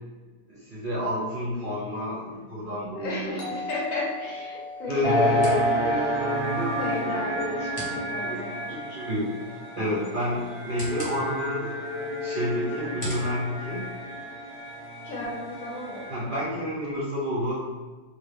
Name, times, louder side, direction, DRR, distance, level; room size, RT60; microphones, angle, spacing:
voice 1, 0.5-3.4 4.9-7.2 8.3-9.3 9.8-11.8 12.2-13.9 16.1-17.6, left 1 dB, 50° right, -9 dB, 0.6 m, -30 dB
voice 2, 3.0-5.6 6.8-8.6 15.0-16.3, left 2 dB, 65° left, -3 dB, 1.1 m, -34 dB
Doorbell, 3.4-8.0, left 2 dB, 85° left, 1.4 m, -40 dB
sound 1, 3.6-14.6, equal, 20° left, 1.0 m, -45 dB
sound 2, 5.0-16.4, equal, 45° left, 1.0 m, -30 dB
2.7 x 2.6 x 3.3 m, 1.4 s
omnidirectional pair, 1.6 m